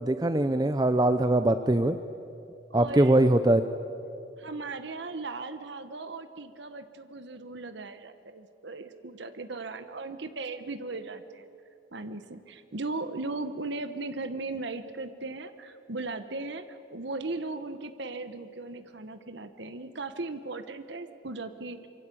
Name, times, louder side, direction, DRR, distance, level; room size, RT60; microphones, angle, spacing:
voice 1, 0.0-2.0 2.7-3.6, right 1 dB, 20° right, 10 dB, 0.6 m, -22 dB
voice 2, 2.7-3.2 4.4-11.5 11.9-21.9, right 3 dB, 55° right, 9 dB, 1.1 m, -37 dB
25.0 x 23.0 x 8.5 m, 2.6 s
head